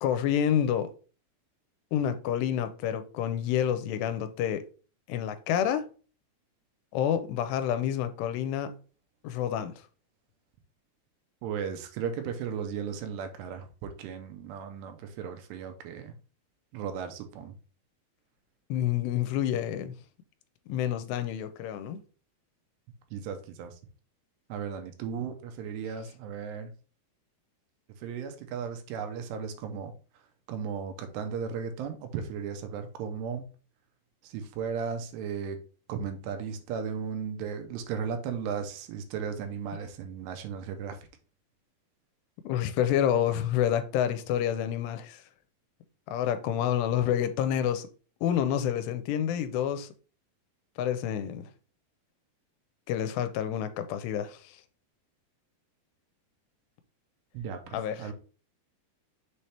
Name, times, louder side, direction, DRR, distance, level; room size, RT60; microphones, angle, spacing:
voice 1, 0.0-0.9 1.9-4.6 5.1-5.8 6.9-8.7 9.2-9.7 18.7-19.9 20.7-22.0 42.5-45.2 46.1-47.9 48.2-49.9 50.8-51.5 52.9-54.4 57.7-58.1, left 10 dB, 85° left, 2.7 m, -28 dB
voice 2, 11.4-16.1 16.7-17.5 23.1-23.8 24.5-26.7 28.0-29.9 30.5-33.5 34.2-35.6 35.9-41.0 57.3-58.1, right 7 dB, 85° right, 2.9 m, -36 dB
6.6 x 3.4 x 4.2 m
omnidirectional pair, 4.8 m